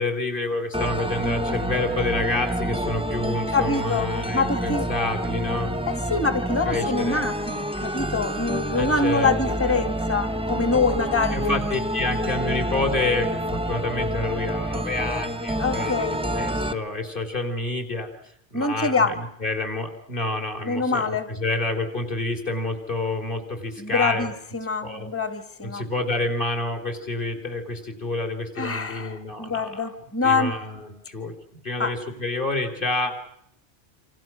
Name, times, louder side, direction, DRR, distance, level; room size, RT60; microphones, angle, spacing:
voice 1, 0.0-5.7 6.7-7.3 8.8-9.8 11.3-15.9 16.3-18.1 18.5-24.3 24.8-25.1 25.6-29.9 30.2-31.3 31.6-33.1, left 2 dB, 45° left, 3 dB, 4.2 m, -28 dB
sound 1, 0.7-16.7, right 1 dB, 5° right, 0.9 m, -28 dB
voice 2, 3.5-4.9 5.9-11.5 15.6-16.2 18.5-19.1 20.6-21.3 23.8-25.8 28.6-30.5 31.8-31.9, left 4 dB, 10° left, 11 dB, 1.5 m, -25 dB
27.5 x 26.5 x 6.2 m, 0.73 s
omnidirectional pair, 1.2 m